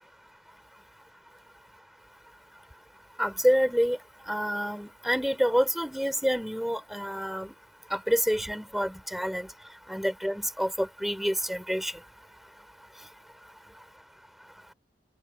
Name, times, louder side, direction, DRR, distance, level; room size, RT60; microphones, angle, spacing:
voice 1, 3.2-4.0 4.3-7.5 7.9-9.5 9.9-11.9, equal, ahead, 3.5 m, -27 dB
head